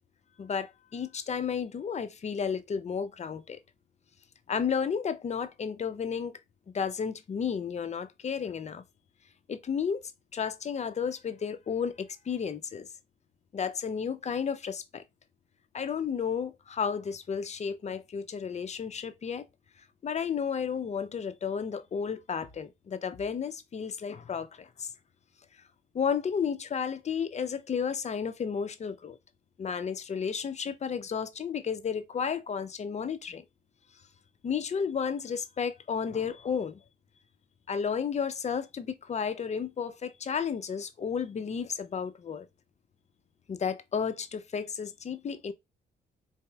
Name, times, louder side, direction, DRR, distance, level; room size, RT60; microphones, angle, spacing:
voice 1, 0.4-3.6 4.5-6.4 6.7-8.8 9.5-10.0 10.3-12.9 13.5-15.0 15.7-19.4 20.0-24.9 25.9-29.2 29.6-33.4 34.4-36.8 37.7-42.5 43.5-45.5, left 6 dB, 35° left, 0.5 m, -32 dB
4.0 x 2.8 x 2.3 m
cardioid pair, 85°, 20 cm